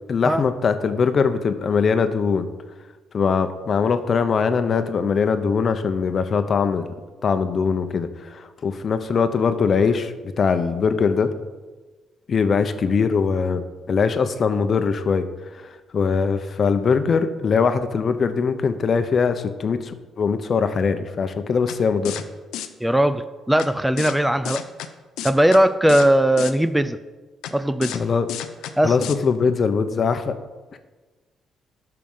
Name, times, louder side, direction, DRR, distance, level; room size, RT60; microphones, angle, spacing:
voice 1, 0.1-2.5 3.1-6.9 7.2-11.3 12.3-13.6 13.9-15.3 15.5-22.2 27.9-28.3 28.8-30.3 30.7-30.8, left 5 dB, 50° left, 10 dB, 0.9 m, -21 dB
sound 1, 21.7-21.8 22.0-22.2 22.5-22.7 23.6-23.7 24.0-24.2 24.4-24.9 25.2-25.6 25.9-26.1 26.4-26.5 27.4-27.5 27.8-28.0 28.3-28.7 29.0-29.1, left 11 dB, 90° left, 0.7 m, -31 dB
voice 2, 22.8-24.6 25.2-27.0 27.5-28.0 28.8-29.0, right 1 dB, 5° right, 11 dB, 0.5 m, -19 dB
12.5 x 5.8 x 5.6 m, 1.3 s
cardioid pair, 90°, 0 cm